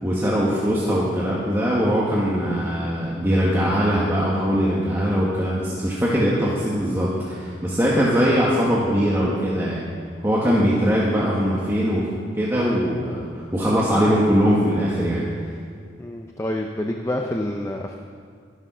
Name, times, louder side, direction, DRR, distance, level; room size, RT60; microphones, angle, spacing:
voice 1, 0.0-9.9 10.2-12.1 12.4-15.3, equal, 15° right, -6 dB, 1.5 m, -21 dB
voice 2, 16.0-18.0, left 1 dB, 15° left, 2 dB, 0.5 m, -27 dB
12.5 x 9.9 x 6.2 m, 2.2 s
head